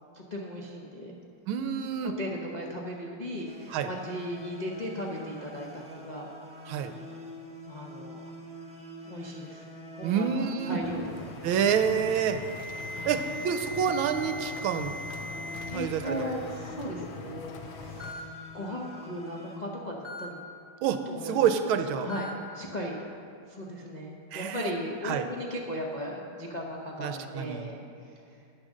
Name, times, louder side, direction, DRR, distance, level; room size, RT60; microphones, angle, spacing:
voice 1, 0.1-1.2 2.0-6.7 7.7-8.2 9.0-9.6 9.9-11.3 12.7-13.3 15.7-20.4 21.0-21.5 22.0-23.0 23.5-28.4, equal, 45° left, -3 dB, 0.5 m, -37 dB
voice 2, 1.5-2.2 3.7-3.9 6.7-6.9 10.0-10.8 11.4-12.4 13.0-15.0 15.7-16.3 20.8-22.1 24.3-24.7 25.0-25.2 27.0-27.7, right 7 dB, 80° right, 8 dB, 1.4 m, -28 dB
sound 1, 3.4-19.6, equal, 5° right, 0.9 m, -46 dB
sound 2, 10.8-18.1, left 6 dB, 75° left, 1.5 m, -43 dB
Alarm, 11.7-15.7 16.0-16.4 17.3-17.4 18.0-18.2 20.0-20.3 22.1-22.3, equal, 30° right, 2.1 m, -40 dB
10.0 x 8.9 x 6.3 m, 2.5 s
omnidirectional pair, 2.4 m